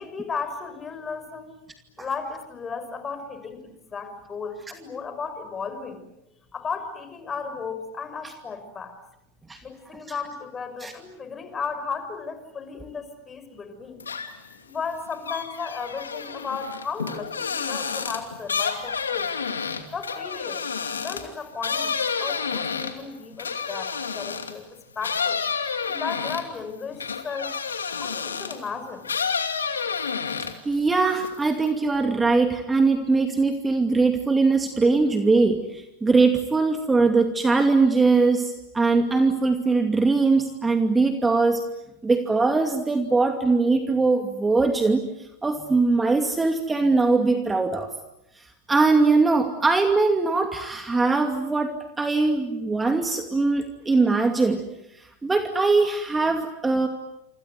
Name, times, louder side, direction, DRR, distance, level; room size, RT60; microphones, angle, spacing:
voice 1, 0.0-1.6 2.0-6.0 6.5-8.9 9.6-14.0 14.7-19.3 19.9-20.6 21.0-25.4 25.9-27.6 28.0-29.1, left 5 dB, 25° left, 9 dB, 5.8 m, -35 dB
sound 1, 14.0-14.5 14.9-24.6 25.0-28.7 29.0-30.7 31.1-31.7, left 6 dB, 85° left, 2.6 m, -30 dB
voice 2, 30.6-41.7 42.0-45.0 45.4-47.9 48.7-54.6 55.0-56.9, right 3 dB, 15° right, 6 dB, 2.5 m, -21 dB
28.0 x 26.0 x 8.0 m, 0.87 s
hypercardioid pair, 90°, 0 cm